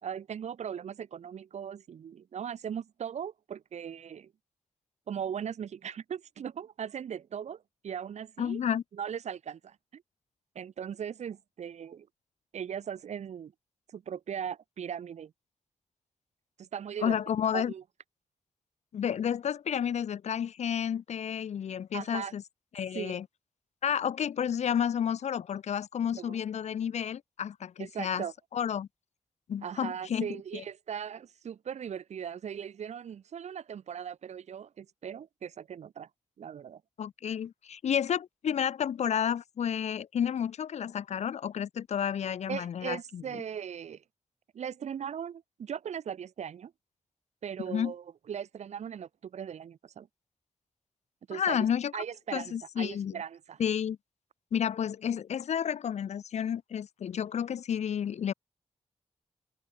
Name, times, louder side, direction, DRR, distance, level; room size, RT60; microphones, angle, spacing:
voice 1, 0.0-4.3 5.1-8.6 8.9-10.0 10.6-12.1 12.5-13.5 13.9-15.3 16.6-17.2 17.5-17.8 21.9-22.3 22.9-23.2 26.2-26.4 27.8-28.3 29.6-36.1 36.4-36.8 42.5-44.0 44.5-46.7 47.4-50.1 51.3-51.7 51.9-53.6, right 8 dB, 85° right, 3.6 m, -39 dB
voice 2, 8.4-8.8 17.0-17.7 18.9-22.4 22.7-23.2 23.8-28.2 28.5-28.9 29.5-30.3 30.5-30.6 37.0-43.4 47.7-47.9 51.3-51.9 52.3-53.1 53.6-54.0 54.5-58.3, left 8 dB, 85° left, 1.5 m, -31 dB
open air
cardioid pair, 70°, 11 cm